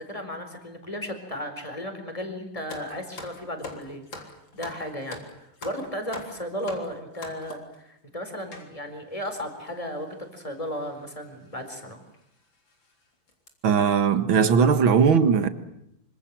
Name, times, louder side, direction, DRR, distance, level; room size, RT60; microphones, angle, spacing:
voice 1, 0.0-4.0 4.5-5.2 5.6-12.0, equal, 15° left, 4.5 m, -35 dB
sound 1, 2.7-7.8 8.5-8.7 9.4-9.5 9.7-9.9 10.8-11.0 11.5-11.6 12.1-12.2 12.7-12.9 13.3-13.5, left 3 dB, 65° left, 4.5 m, -42 dB
voice 2, 13.6-15.5, right 6 dB, 70° right, 2.4 m, -19 dB
26.0 x 25.5 x 7.7 m
omnidirectional pair, 2.3 m